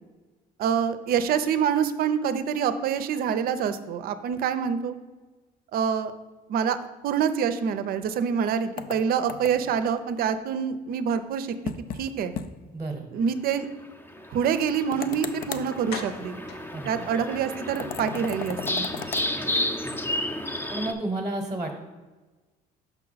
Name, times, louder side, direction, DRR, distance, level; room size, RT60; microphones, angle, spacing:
voice 1, 0.6-5.0 5.7-6.1 6.5-6.8 7.0-11.5 12.0-12.3 13.1-13.7 14.3-16.4 16.9-18.8, right 7 dB, 60° right, 12 dB, 0.5 m, -26 dB
sound 1, 8.8-9.8 11.7-12.0 12.4-12.5 12.8-12.9 14.9-15.7 17.8-19.3, left 7 dB, 60° left, 0.5 m, -35 dB
voice 2, 12.7-13.1 16.7-17.1 19.3-20.1 20.7-21.8, right 2 dB, 15° right, 2 dB, 0.9 m, -33 dB
sound 2, 14.1-20.9, left 1 dB, 15° left, 0.6 m, -32 dB
sound 3, 15.2-15.3 15.9-17.7 18.0-18.1 18.5-18.6 18.9-19.0, left 5 dB, 90° left, 0.8 m, -41 dB
5.8 x 5.6 x 4.0 m, 1.3 s
cardioid pair, 110°, 17 cm